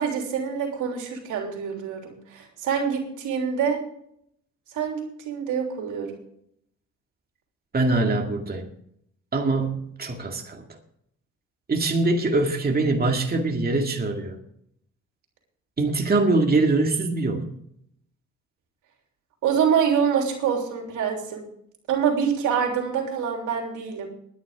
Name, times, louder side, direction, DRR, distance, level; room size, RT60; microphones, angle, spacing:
voice 1, 0.0-3.8 4.7-6.1 19.4-21.4 21.9-24.1, right 7 dB, 85° right, 2 dB, 3.3 m, -25 dB
voice 2, 7.7-8.7 9.3-10.6 11.7-14.3 15.8-17.5, right 2 dB, 30° right, 2 dB, 2.2 m, -23 dB
20.0 x 10.0 x 3.7 m, 0.72 s
cardioid pair, 90°, 30 cm